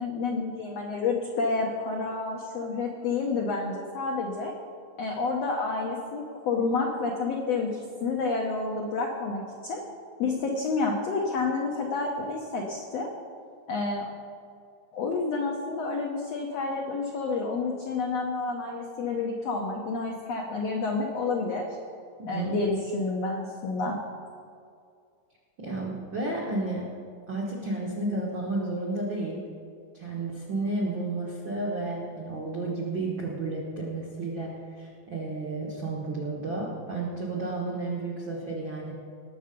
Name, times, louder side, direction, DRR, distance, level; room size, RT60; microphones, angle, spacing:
voice 1, 0.0-4.5 5.0-9.8 10.2-13.1 13.7-14.1 14.9-21.7 22.3-23.9, left 3 dB, 85° left, 1 dB, 1.4 m, -29 dB
voice 2, 22.2-22.6 25.6-26.9 27.3-29.4 29.9-38.9, right 2 dB, 75° right, -3 dB, 1.1 m, -32 dB
19.0 x 6.7 x 5.1 m, 2.3 s
omnidirectional pair, 4.4 m